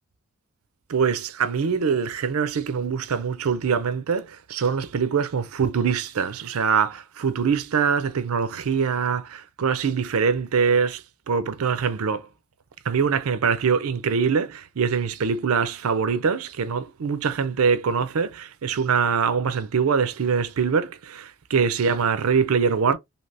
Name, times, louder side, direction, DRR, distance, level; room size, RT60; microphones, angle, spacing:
voice 1, 0.9-12.2 12.9-23.0, right 6 dB, 90° right, 0.5 m, -23 dB
3.3 x 2.7 x 2.7 m
head